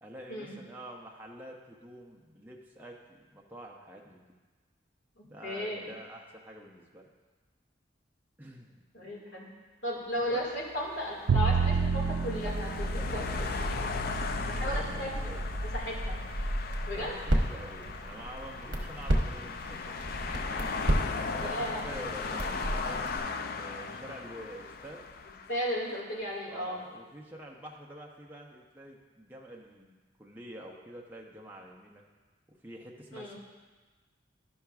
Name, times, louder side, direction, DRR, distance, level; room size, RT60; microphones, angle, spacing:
voice 1, 0.0-4.2 5.3-7.1 8.4-9.1 10.2-10.4 14.6-15.4 16.9-20.0 21.2-25.0 26.5-32.0 32.5-33.4, right 1 dB, 10° right, -1 dB, 0.6 m, -47 dB
voice 2, 5.2-5.9 8.9-9.5 9.8-13.9 14.4-15.1 15.7-16.2 16.9-17.2 21.4-21.8 25.5-26.8 33.1-33.4, equal, 80° left, -3 dB, 1.9 m, -35 dB
sound 1, 10.5-25.9, left 4 dB, 50° left, 0.4 m, -38 dB
Bowed string instrument, 11.3-17.4, right 5 dB, 85° right, 0.4 m, -32 dB
Crackle, 12.3-23.2, equal, 65° right, 1.0 m, -33 dB
12.5 x 5.7 x 2.4 m, 1.3 s
head